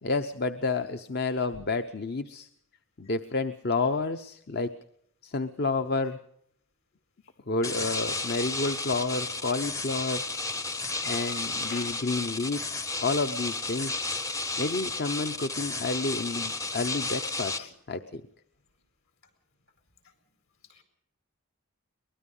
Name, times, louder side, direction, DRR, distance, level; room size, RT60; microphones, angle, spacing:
voice 1, 0.0-2.5 3.0-4.7 5.2-6.2 7.5-10.2 11.0-14.0 14.6-18.2, left 3 dB, 45° left, 9 dB, 0.8 m, -30 dB
sound 1, 7.6-17.6, left 3 dB, 15° left, 0.7 m, -33 dB
voice 2, 11.2-12.0 12.4-12.5 13.8-14.0 17.6-17.7 20.7-20.8, left 5 dB, 65° left, 6 dB, 4.9 m, -45 dB
23.0 x 21.0 x 5.5 m, 0.68 s
head